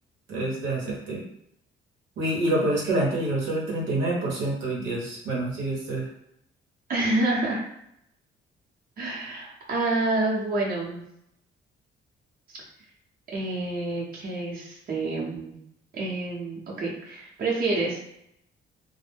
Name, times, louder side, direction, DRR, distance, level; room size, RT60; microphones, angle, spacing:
voice 1, 0.3-1.2 2.2-6.1, right 1 dB, 80° right, -3 dB, 0.9 m, -27 dB
voice 2, 6.9-7.6 9.0-11.0 13.3-15.6 15.9-18.0, right 2 dB, 50° right, -4 dB, 0.8 m, -28 dB
2.1 x 2.1 x 3.3 m, 0.77 s
cardioid pair, 90°, 20 cm